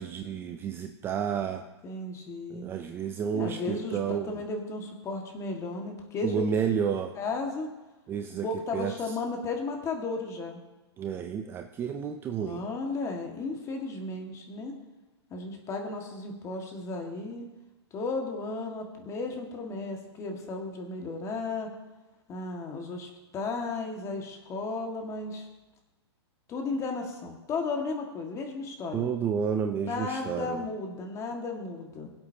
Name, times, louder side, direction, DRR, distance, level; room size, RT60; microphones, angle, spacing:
voice 1, 0.0-1.7 2.5-4.3 6.2-7.2 8.1-8.5 8.7-8.9 11.0-12.6 28.9-30.6, right 7 dB, 15° right, 6 dB, 0.4 m, -31 dB
voice 2, 1.8-2.7 3.3-6.4 7.1-7.7 8.4-10.6 12.4-14.7 15.3-17.5 17.9-21.7 22.3-25.5 26.5-29.1 29.8-32.1, left 3 dB, 20° left, 2 dB, 1.8 m, -34 dB
22.0 x 8.0 x 2.8 m, 1.1 s
hypercardioid pair, 140°, 15 cm